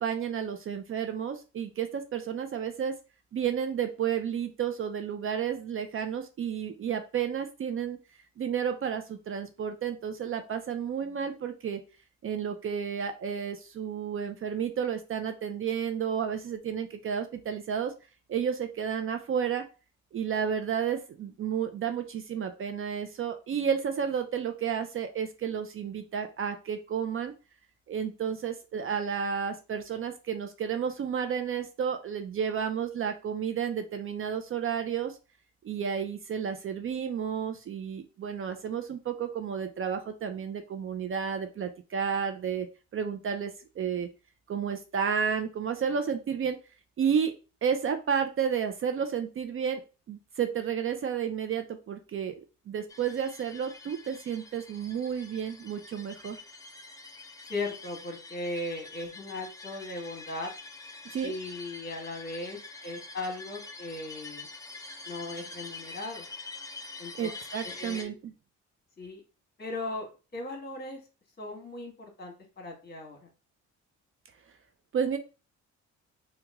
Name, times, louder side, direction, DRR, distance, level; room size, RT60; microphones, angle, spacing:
voice 1, 0.0-3.0 3.3-8.0 8.4-11.8 12.2-17.9 18.3-19.6 20.1-27.3 27.9-35.2 35.6-42.7 42.9-44.1 44.5-46.6 47.0-47.3 47.6-49.8 50.1-52.4 52.7-56.4 61.1-61.3 67.2-68.3 74.9-75.2, right 7 dB, 45° right, 7 dB, 0.5 m, -31 dB
sound 1, 52.9-68.0, left 3 dB, 10° left, 0.5 m, -45 dB
voice 2, 57.4-60.5 61.2-64.5 65.0-66.3 67.0-67.3 67.6-68.1 69.0-69.2 69.6-70.1 70.3-71.0 71.4-73.3, left 2 dB, 30° left, 1 dB, 1.4 m, -38 dB
3.0 x 2.3 x 3.4 m, 0.32 s
cardioid pair, 90°, 30 cm